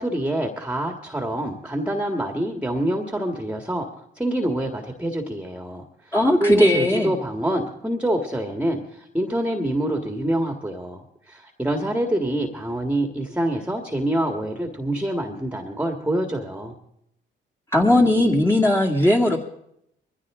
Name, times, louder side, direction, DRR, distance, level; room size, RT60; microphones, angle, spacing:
voice 1, 0.0-3.9 4.2-16.7, right 1 dB, 5° right, 4 dB, 1.8 m, -26 dB
voice 2, 6.1-7.1 17.7-19.4, left 1 dB, 10° left, -2 dB, 2.2 m, -18 dB
22.0 x 15.5 x 3.7 m, 0.73 s
cardioid pair, 90°, 20 cm